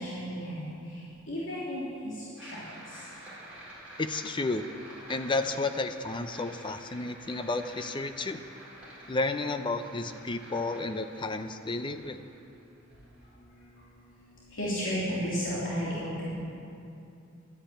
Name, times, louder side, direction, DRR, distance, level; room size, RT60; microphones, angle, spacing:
voice 1, 0.0-3.1 12.9-13.0 13.2-16.3, equal, 70° left, -8 dB, 3.0 m, -35 dB
sound 1, 2.4-13.3, right 1 dB, 5° right, 4.2 m, -49 dB
voice 2, 4.0-4.7 5.1-8.4 9.1-12.2, left 3 dB, 25° left, 9 dB, 0.5 m, -32 dB
12.5 x 10.0 x 8.9 m, 2.7 s
head